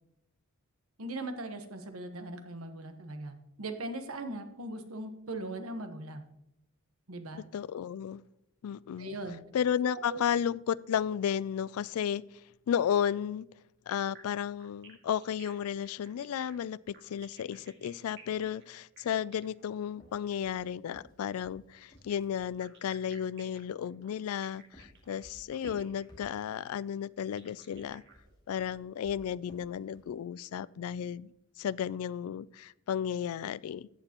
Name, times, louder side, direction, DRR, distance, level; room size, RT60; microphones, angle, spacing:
voice 1, 1.0-6.2 7.1-7.4 9.0-9.4 9.9-10.2, right 2 dB, 75° right, 7 dB, 1.2 m, -39 dB
voice 2, 7.5-8.2 8.6-9.2 9.5-12.2 12.7-13.5 13.9-28.0 28.5-33.9, left 8 dB, 80° left, 19 dB, 0.3 m, -33 dB
sound 1, 13.9-20.7 21.9-28.6, right 5 dB, 50° right, 2.0 m, -57 dB
sound 2, 19.9-22.6 24.3-26.7 27.6-30.2, right 1 dB, 20° left, 2.4 m, -55 dB
14.5 x 8.7 x 3.0 m, 0.85 s
head